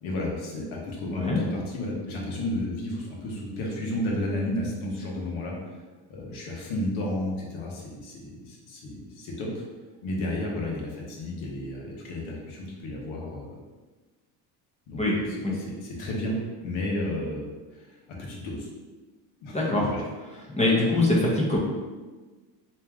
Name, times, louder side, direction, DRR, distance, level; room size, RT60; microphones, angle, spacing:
voice 1, 0.0-5.8 6.1-9.6 10.0-13.6 14.9-15.2 15.5-18.7 19.4-20.0, left 1 dB, 70° left, -2 dB, 1.3 m, -32 dB
voice 2, 19.5-19.9 20.5-21.6, left 2 dB, 15° left, -4 dB, 0.9 m, -23 dB
3.3 x 3.0 x 3.6 m, 1.3 s
supercardioid pair, 90°, 49 cm